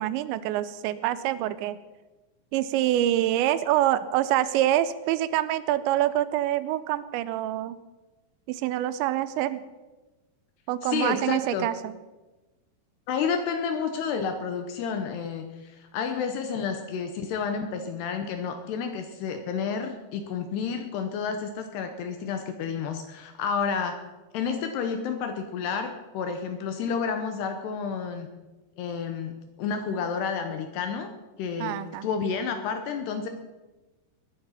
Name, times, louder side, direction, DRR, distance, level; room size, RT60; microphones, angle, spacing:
voice 1, 0.0-1.8 2.5-7.8 8.5-9.6 10.7-12.0 31.6-32.1, right 13 dB, 80° right, 14 dB, 2.8 m, -26 dB
voice 2, 10.8-11.7 13.1-24.0 24.3-28.3 28.8-29.3 29.6-31.1 31.4-31.8 32.0-33.3, left 6 dB, 75° left, 6 dB, 2.7 m, -30 dB
20.5 x 11.0 x 5.8 m, 1.2 s
omnidirectional pair, 5.5 m